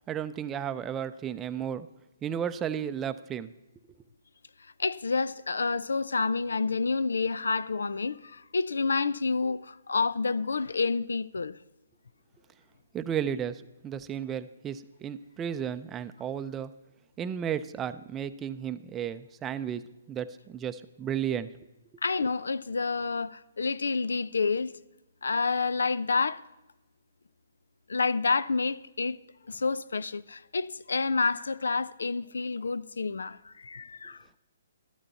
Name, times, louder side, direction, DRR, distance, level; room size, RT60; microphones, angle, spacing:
voice 1, 0.1-1.9 2.2-3.5 12.9-16.7 17.2-19.8 20.1-21.5, right 9 dB, 15° right, 0.5 m, -33 dB
voice 2, 4.8-11.6 22.0-24.7 25.2-26.4 27.9-29.2 29.5-34.2, left 4 dB, 85° left, 0.4 m, -29 dB
12.5 x 12.5 x 4.1 m
hypercardioid pair, 145°, 0 cm